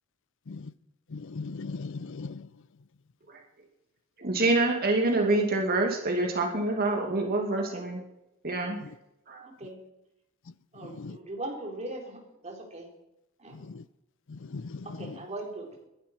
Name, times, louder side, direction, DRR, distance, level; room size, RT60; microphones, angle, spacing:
voice 1, 1.1-2.4 10.8-11.2 13.7-13.8 14.3-15.1, left 4 dB, 65° left, 0.6 m, -38 dB
voice 2, 4.2-8.0 8.4-8.8 9.3-9.5, right 2 dB, 50° right, 2.4 m, -26 dB
voice 3, 9.4-9.8 10.7-12.9 13.4-13.7 14.8-15.7, right 2 dB, 35° right, 4.1 m, -40 dB
21.0 x 11.5 x 4.5 m
head